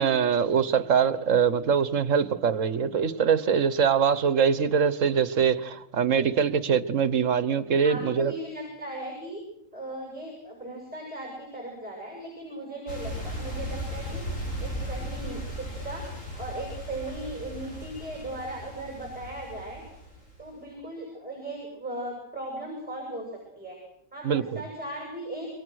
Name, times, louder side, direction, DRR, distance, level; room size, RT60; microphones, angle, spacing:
voice 1, 0.0-8.3 24.2-24.6, right 7 dB, 70° right, 1.5 m, -23 dB
voice 2, 7.8-9.4 9.7-14.2 14.6-16.0 16.4-19.8 20.4-23.3 23.6-23.8 24.1-25.5, right 1 dB, 5° right, 7.2 m, -37 dB
sound 1, 12.9-20.5, equal, 75° left, 6.1 m, -36 dB
28.5 x 24.0 x 6.4 m
omnidirectional pair, 1.4 m